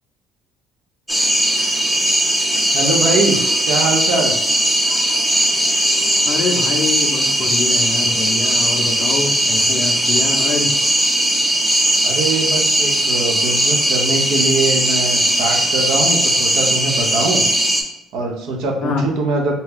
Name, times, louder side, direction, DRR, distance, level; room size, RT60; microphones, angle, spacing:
sound 1, 1.1-17.8, right 1 dB, 5° right, 0.4 m, -18 dB
voice 1, 2.7-3.4 3.6-4.3 12.0-17.4 18.1-19.6, right 3 dB, 85° right, 1 dB, 0.6 m, -22 dB
voice 2, 6.3-10.8 18.8-19.1, left 4 dB, 55° left, 2 dB, 0.4 m, -25 dB
2.6 x 2.3 x 3.4 m, 0.89 s
cardioid pair, 135°, 0 cm